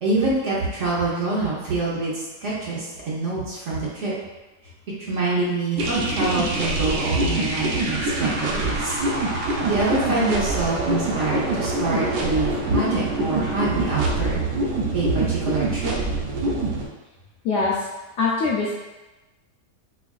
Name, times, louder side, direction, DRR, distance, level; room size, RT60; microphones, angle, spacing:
voice 1, 0.0-4.1 5.0-9.0 9.6-14.4 14.9-15.9, right 2 dB, 55° right, -6 dB, 1.1 m, -25 dB
sound 1, 5.8-16.8, right 2 dB, 85° right, 1.2 m, -25 dB
voice 2, 17.4-17.9 18.2-18.7, left 4 dB, 75° left, -5 dB, 0.7 m, -22 dB
4.6 x 2.5 x 2.3 m, 1.1 s
omnidirectional pair, 1.8 m